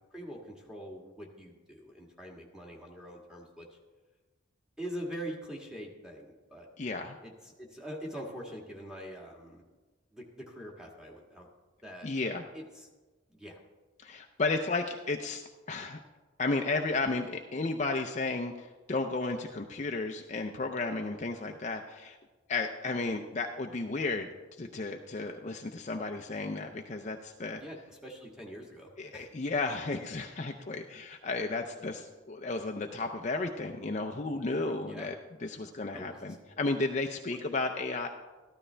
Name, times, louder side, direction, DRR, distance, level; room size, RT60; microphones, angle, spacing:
voice 1, 0.1-3.8 4.8-6.7 7.2-9.6 10.1-11.5 11.8-12.1 12.5-12.9 13.3-13.6 27.6-29.3 34.9-35.1 35.9-36.4 37.3-37.4, equal, 5° right, -2 dB, 1.6 m, -44 dB
voice 2, 6.8-7.2 12.0-12.4 14.0-15.4 15.7-16.0 16.4-22.2 22.5-24.3 24.6-27.6 29.0-35.1 35.4-38.1, left 3 dB, 35° left, 4 dB, 0.5 m, -33 dB
13.5 x 12.5 x 3.3 m, 1.2 s
head